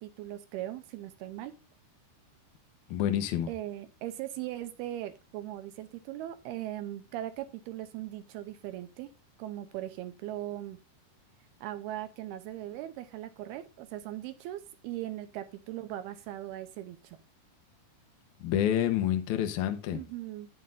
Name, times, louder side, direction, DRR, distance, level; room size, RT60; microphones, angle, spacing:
voice 1, 0.0-1.5 3.5-9.1 9.4-10.8 11.6-17.2 19.9-20.5, right 13 dB, 80° right, 2.6 m, -39 dB
voice 2, 2.9-3.5 18.4-20.0, left 10 dB, 70° left, 1.9 m, -28 dB
11.5 x 9.1 x 2.6 m
omnidirectional pair, 4.8 m